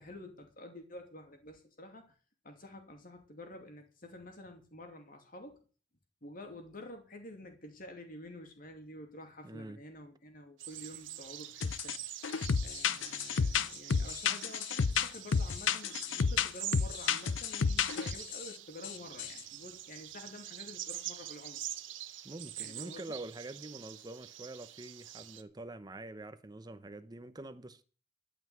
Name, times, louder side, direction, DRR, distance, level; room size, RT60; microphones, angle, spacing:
voice 1, 0.0-2.1 2.4-5.6 6.2-12.3 12.6-21.6 22.6-23.1, left 1 dB, 45° left, 2.7 m, -49 dB
voice 2, 9.4-9.8 13.9-14.2 22.2-27.8, right 2 dB, 20° right, 0.8 m, -46 dB
sound 1, 10.6-25.4, right 12 dB, 75° right, 1.0 m, -45 dB
sound 2, 11.6-12.0 12.2-18.5 18.8-18.9 19.2-19.4, left 6 dB, 80° left, 0.6 m, -31 dB
12.5 x 5.8 x 9.1 m
head